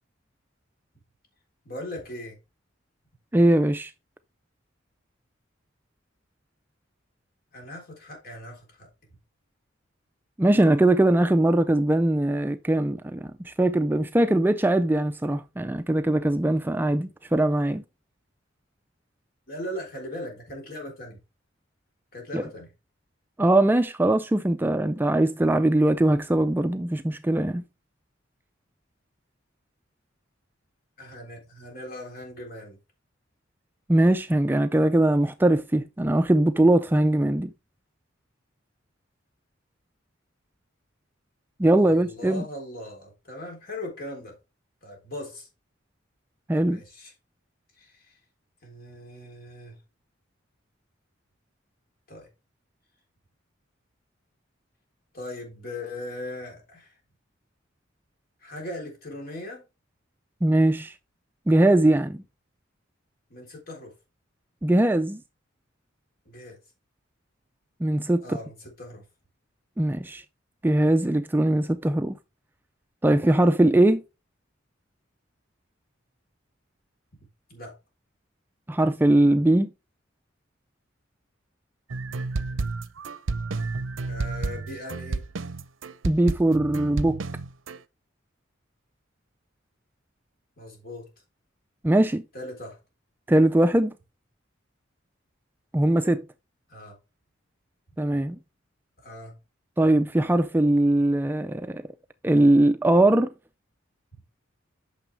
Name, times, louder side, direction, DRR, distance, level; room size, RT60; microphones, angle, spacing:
voice 1, 1.6-2.4 7.5-8.9 19.5-21.2 22.1-22.7 31.0-32.8 41.8-44.4 44.8-45.5 46.7-47.1 47.8-48.2 48.6-49.8 52.1-52.3 55.1-56.9 58.4-59.6 63.3-63.9 66.3-66.6 68.2-69.0 77.5-77.7 82.1-82.2 84.1-85.2 90.6-91.1 92.3-92.8 96.7-97.0 99.0-99.3, left 1 dB, 50° left, 3.6 m, -39 dB
voice 2, 3.3-3.9 10.4-17.8 22.3-22.4 23.4-27.6 33.9-37.5 41.6-42.4 46.5-46.8 60.4-60.9 61.5-62.2 64.6-65.2 67.8-68.4 69.8-70.2 70.6-72.1 73.0-74.0 78.7-79.7 86.0-87.2 91.8-92.2 93.3-93.9 95.7-96.2 98.0-98.4 99.8-101.8 102.2-103.3, right 1 dB, 10° right, 0.3 m, -21 dB
sound 1, 81.9-87.8, right 3 dB, 75° right, 0.6 m, -31 dB
9.1 x 6.2 x 3.3 m
head